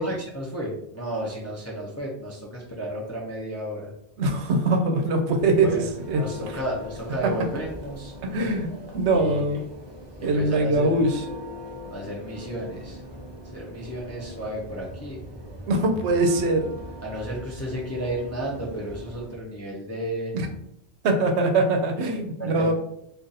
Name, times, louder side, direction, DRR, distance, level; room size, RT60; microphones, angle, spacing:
voice 1, 0.0-3.9 5.6-5.9 6.2-8.1 9.1-9.6 10.2-11.1 11.9-13.0 13.5-15.2 17.0-20.3 22.4-22.7, right 1 dB, 25° left, -4 dB, 0.4 m, -33 dB
voice 2, 4.2-5.8 6.1-6.2 8.2-9.6 10.2-11.1 15.6-16.7 20.3-20.5 21.0-22.7, right 2 dB, 80° right, 4 dB, 0.9 m, -22 dB
Church bell, 5.2-19.4, equal, 35° right, 0.5 m, -41 dB
2.5 x 2.5 x 3.9 m, 0.76 s
omnidirectional pair, 1.1 m